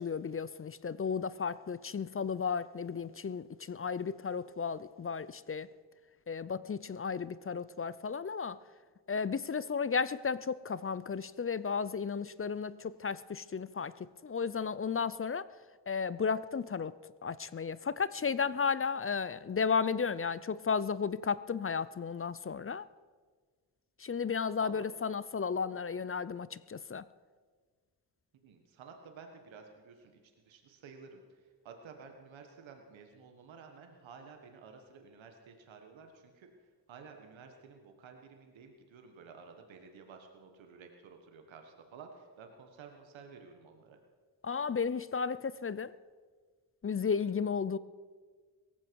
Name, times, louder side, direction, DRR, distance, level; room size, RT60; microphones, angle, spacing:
voice 1, 0.0-5.7 6.3-8.6 9.1-15.5 15.9-16.9 17.2-22.9 24.0-27.1 44.4-45.9 46.8-47.8, left 5 dB, 30° left, 17 dB, 0.5 m, -34 dB
voice 2, 28.4-44.0, right 5 dB, 90° right, 5 dB, 1.5 m, -53 dB
17.5 x 15.0 x 4.7 m, 1.5 s
cardioid pair, 55°, 45 cm